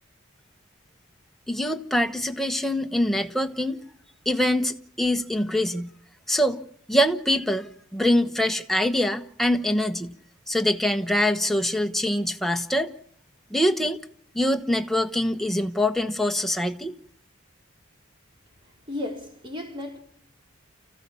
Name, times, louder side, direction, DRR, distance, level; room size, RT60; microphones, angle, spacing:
voice 1, 1.5-3.8 4.2-5.9 6.3-6.6 6.9-7.7 7.9-10.1 10.5-12.9 13.5-14.0 14.3-16.9, left 1 dB, ahead, 1.1 m, -24 dB
voice 2, 18.9-20.0, left 1 dB, 25° right, 3.7 m, -34 dB
29.0 x 15.5 x 7.1 m
head